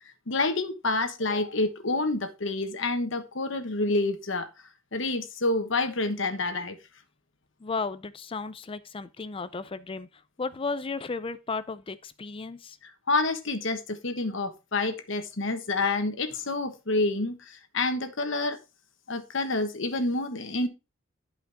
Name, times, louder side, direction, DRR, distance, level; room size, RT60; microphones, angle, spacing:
voice 1, 0.3-4.5 4.9-6.8 13.1-18.6 19.1-20.7, left 2 dB, 65° left, 1.3 m, -28 dB
voice 2, 7.6-12.8, left 4 dB, 25° left, 0.4 m, -34 dB
11.5 x 5.1 x 3.5 m
head